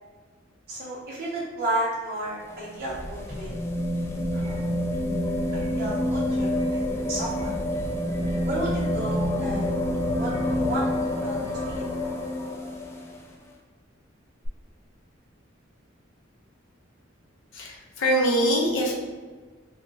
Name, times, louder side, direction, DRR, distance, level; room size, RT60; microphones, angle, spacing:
voice 1, 0.7-3.5 4.3-4.6 5.5-7.5 8.4-9.7 10.2-10.9 11.2-11.8, right 1 dB, 50° right, -6 dB, 0.6 m, -32 dB
sound 1, 2.3-13.2 14.4-14.5, left 1 dB, 15° left, 0.3 m, -28 dB
voice 2, 17.5-18.9, equal, 70° left, -2 dB, 0.7 m, -23 dB
3.1 x 2.0 x 3.3 m, 1.4 s
head